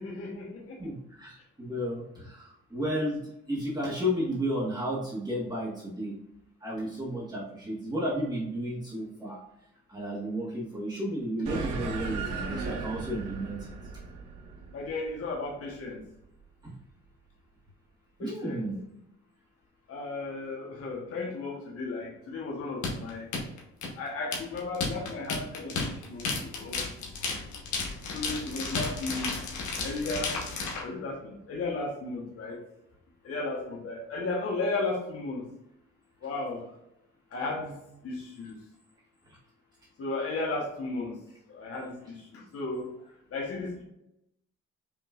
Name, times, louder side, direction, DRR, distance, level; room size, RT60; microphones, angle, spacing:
voice 1, 0.0-0.8 14.7-16.0 18.2-18.7 19.9-23.3 24.0-26.9 28.1-29.3 29.8-30.4 30.8-32.6 33.2-35.5 36.2-36.6 37.3-37.8 38.0-38.5 40.0-41.2 41.5-42.9 43.3-43.8, left 3 dB, 50° left, -2 dB, 1.1 m, -34 dB
voice 2, 0.8-3.2 3.5-6.2 6.6-9.4 9.9-13.7 16.6-16.8 18.2-18.8 39.3-39.4, equal, 15° right, -8 dB, 1.5 m, -33 dB
sound 1, 11.5-16.2, right 3 dB, 85° right, 0.9 m, -36 dB
sound 2, 22.8-30.8, left 4 dB, 75° left, 1.3 m, -33 dB
5.6 x 3.0 x 2.4 m, 0.84 s
cardioid pair, 90°, 30 cm